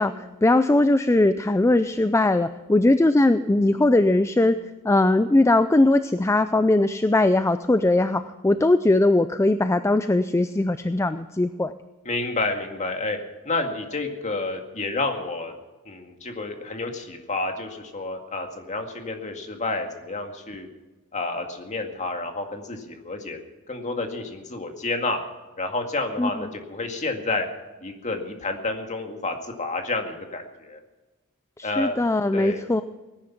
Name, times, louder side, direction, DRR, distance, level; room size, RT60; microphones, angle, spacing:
voice 1, 0.0-4.6 4.8-11.7 26.2-26.3 31.6-32.8, left 2 dB, 15° left, 11 dB, 0.4 m, -20 dB
voice 2, 12.0-13.2 13.4-15.6 15.9-20.7 21.1-23.4 23.7-25.2 25.6-27.5 27.8-30.8 31.6-32.0 32.3-32.6, left 2 dB, 35° left, 4 dB, 2.1 m, -29 dB
18.5 x 10.5 x 5.9 m, 1.2 s
head